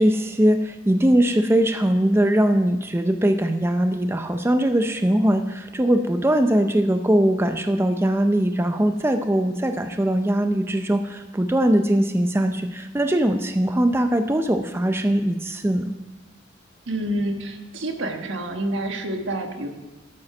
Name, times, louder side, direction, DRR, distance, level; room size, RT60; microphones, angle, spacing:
voice 1, 0.0-15.9, right 1 dB, 10° right, 7 dB, 0.4 m, -21 dB
voice 2, 16.9-19.7, right 1 dB, 80° right, 4 dB, 1.4 m, -28 dB
11.5 x 7.9 x 5.9 m, 1.1 s
head